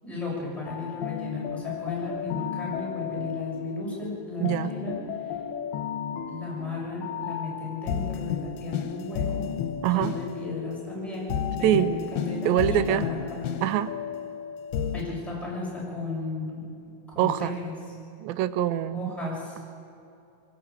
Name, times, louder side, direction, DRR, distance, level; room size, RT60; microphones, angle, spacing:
voice 1, 0.0-5.4 6.3-9.5 9.9-13.4 14.9-16.6 17.1-17.7 18.9-19.6, left 3 dB, ahead, -5 dB, 6.7 m, -35 dB
sound 1, 0.7-15.0, left 8 dB, 80° left, 3.0 m, -33 dB
voice 2, 4.4-4.7 9.8-10.2 11.6-12.0 12.5-13.1 13.6-14.0 17.2-17.6 18.2-19.1, right 12 dB, 80° right, 13 dB, 2.3 m, -24 dB
23.0 x 18.5 x 8.5 m, 2.8 s
omnidirectional pair, 4.4 m